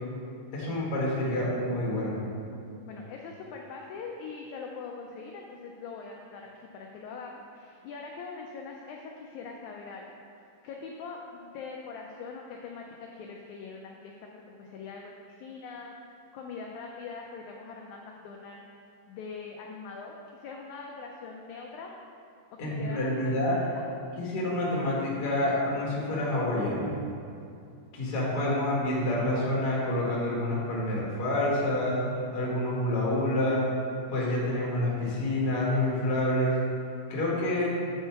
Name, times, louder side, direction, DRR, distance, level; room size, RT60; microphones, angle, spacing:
voice 1, 0.5-2.2 22.6-23.6 24.2-26.9 27.9-32.0 32.3-33.6 34.1-36.5 37.1-37.7, left 1 dB, 45° left, -5 dB, 1.3 m, -28 dB
voice 2, 2.9-6.5 6.7-10.1 10.4-15.9 16.3-18.6 19.1-21.9 22.5-23.8, left 4 dB, 80° left, 0 dB, 1.7 m, -42 dB
7.9 x 4.5 x 4.5 m, 2.5 s
omnidirectional pair, 3.8 m